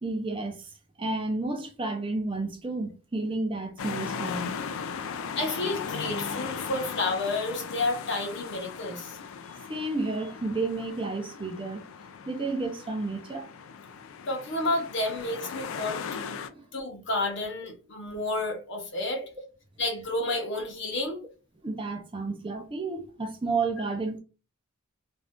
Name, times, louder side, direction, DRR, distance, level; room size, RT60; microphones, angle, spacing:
voice 1, 0.0-4.6 9.7-11.8 12.3-13.5 16.5-16.6 21.6-24.2, right 3 dB, 25° right, 0.5 m, -31 dB
sound 1, 3.8-16.5, left 6 dB, 70° left, 0.4 m, -38 dB
voice 2, 5.4-9.2 14.3-16.1 16.7-19.2 19.8-21.2, left 2 dB, 55° left, 0.8 m, -30 dB
2.5 x 2.3 x 3.4 m
head